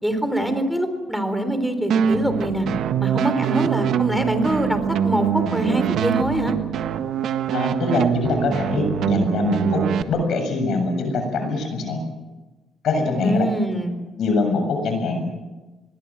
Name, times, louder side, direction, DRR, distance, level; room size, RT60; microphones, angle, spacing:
voice 1, 0.0-2.7 3.0-6.5 13.2-14.0, right 1 dB, ahead, 9 dB, 4.0 m, -24 dB
sound 1, 1.9-10.0, right 8 dB, 75° right, 1.5 m, -23 dB
voice 2, 7.5-12.0 12.8-13.5 14.2-15.3, left 3 dB, 70° left, 5 dB, 7.3 m, -23 dB
24.5 x 22.0 x 7.6 m, 1.2 s
cardioid pair, 90°, 0 cm